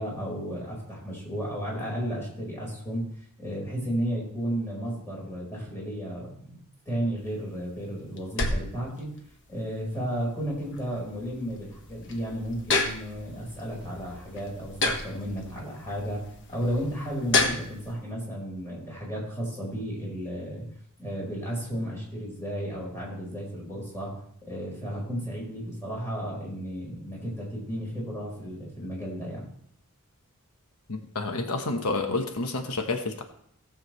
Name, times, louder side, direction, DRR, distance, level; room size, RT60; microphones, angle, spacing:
voice 1, 0.0-3.0 3.4-6.6 6.8-9.1 9.5-20.6 21.0-24.1 24.4-29.4, equal, 10° left, -4 dB, 4.6 m, -33 dB
sound 1, 7.2-17.9, left 3 dB, 60° left, 1.4 m, -32 dB
voice 2, 30.9-33.2, left 3 dB, 90° left, 5 dB, 1.1 m, -29 dB
17.5 x 7.4 x 3.2 m, 0.66 s
head